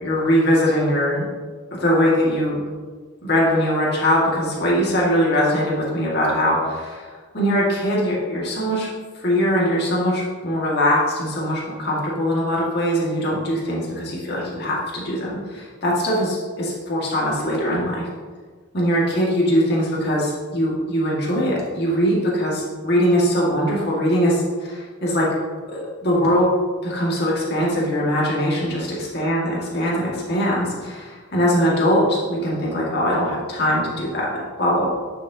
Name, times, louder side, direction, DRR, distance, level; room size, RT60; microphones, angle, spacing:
voice 1, 0.0-1.3 1.7-2.6 3.2-7.1 7.3-8.9 9.2-18.1 18.7-25.3 25.7-26.5 26.8-34.9, equal, 50° left, -5 dB, 2.0 m, -21 dB
9.9 x 6.1 x 2.9 m, 1.5 s
head